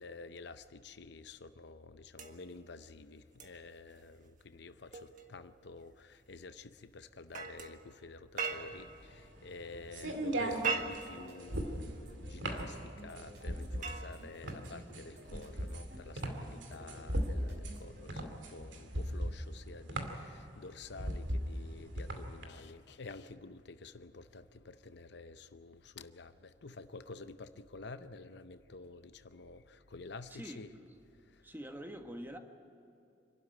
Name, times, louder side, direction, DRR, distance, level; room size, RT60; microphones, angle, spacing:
voice 1, 0.0-30.7 31.3-31.4, left 3 dB, 65° left, 11 dB, 0.7 m, -50 dB
sound 1, 2.1-9.0 10.3-11.9 13.4-14.9 16.4-16.6, right 5 dB, 45° right, 1.6 m, -43 dB
sound 2, 8.6-22.4, right 1 dB, 90° right, 2.4 m, -38 dB
sound 3, 9.7-18.0, equal, 70° right, 4.3 m, -53 dB
voice 2, 30.3-30.6 31.4-32.4, equal, 10° right, 4 dB, 1.6 m, -45 dB
26.5 x 12.5 x 9.4 m, 2.7 s
head